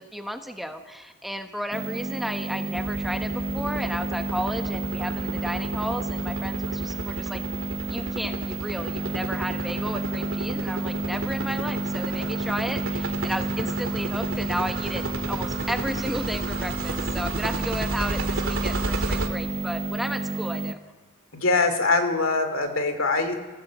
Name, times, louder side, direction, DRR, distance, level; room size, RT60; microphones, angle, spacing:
voice 1, 0.0-7.4 7.9-20.8, equal, ahead, 6 dB, 1.1 m, -33 dB
sound 1, 1.7-20.7, right 2 dB, 30° right, 0.6 m, -31 dB
sound 2, 2.7-19.3, right 2 dB, 75° right, 2.3 m, -33 dB
voice 2, 21.3-23.4, left 3 dB, 70° left, 8 dB, 2.7 m, -23 dB
24.0 x 17.0 x 8.0 m, 1.4 s
head